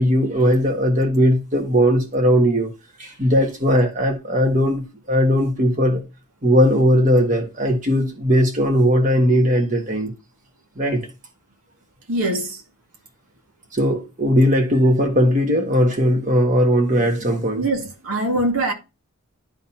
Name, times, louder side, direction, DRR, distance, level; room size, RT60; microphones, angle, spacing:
voice 1, 0.0-2.7 3.0-6.0 6.4-10.1 10.8-11.1 13.7-17.6, equal, 35° right, 1.6 m, -18 dB
voice 2, 12.1-12.6 17.6-18.7, right 1 dB, 80° right, 1.9 m, -23 dB
12.0 x 4.0 x 2.8 m
head